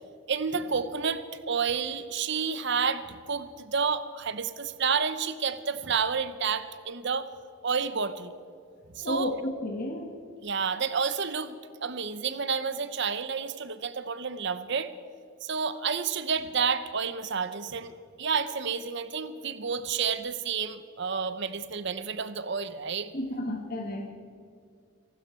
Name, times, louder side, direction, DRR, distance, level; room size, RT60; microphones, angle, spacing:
voice 1, 0.3-7.3 7.6-8.3 8.9-9.3 10.4-14.9 15.4-23.1, right 5 dB, 55° right, 13 dB, 0.8 m, -30 dB
voice 2, 9.0-10.2 23.1-24.1, left 1 dB, 45° left, 2 dB, 1.4 m, -32 dB
25.5 x 12.5 x 4.5 m, 2.3 s
head